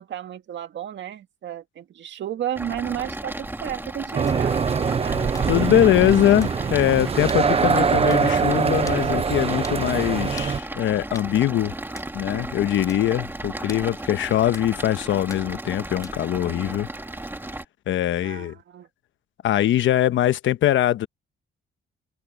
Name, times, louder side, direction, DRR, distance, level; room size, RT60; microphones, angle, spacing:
voice 1, 0.0-5.2 18.2-18.9, right 10 dB, 65° right, 2.0 m, -33 dB
sound 1, 2.5-17.6, right 1 dB, 10° right, 2.3 m, -35 dB
sound 2, 4.1-10.6, right 5 dB, 30° right, 0.7 m, -23 dB
sound 3, 4.3-4.4 5.3-5.5 6.4-6.6 7.3-7.5 8.1-8.3 8.9-9.0 9.6-9.8 10.4-10.6 11.1-11.3 12.0-12.1 12.9-13.1 13.7-13.9 14.5-14.7 15.3-15.5 16.0-16.3, left 2 dB, 15° left, 2.2 m, -42 dB
voice 2, 5.1-11.7 12.1-16.9 17.9-18.5 19.4-21.1, left 12 dB, 70° left, 1.0 m, -22 dB
cardioid pair, 90°, 20 cm